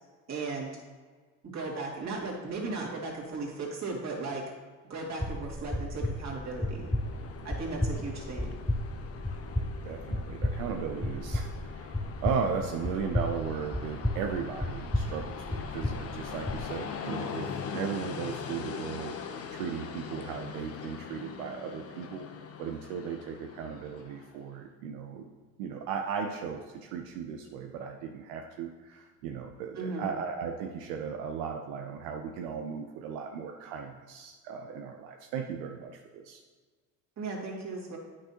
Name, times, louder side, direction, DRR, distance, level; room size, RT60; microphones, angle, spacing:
voice 1, 0.3-0.7 1.4-4.4 4.9-6.9 7.4-8.5 29.7-30.1 37.2-38.0, right 3 dB, 40° right, -3 dB, 2.3 m, -36 dB
sound 1, 5.2-16.7, left 1 dB, 5° left, 0.3 m, -33 dB
Train, 5.7-24.4, left 6 dB, 35° left, 0.7 m, -42 dB
voice 2, 9.8-19.2 19.5-22.3 22.6-25.3 25.6-36.4, right 6 dB, 85° right, 3 dB, 0.7 m, -36 dB
8.9 x 6.1 x 2.9 m, 1.4 s
supercardioid pair, 85°, 41 cm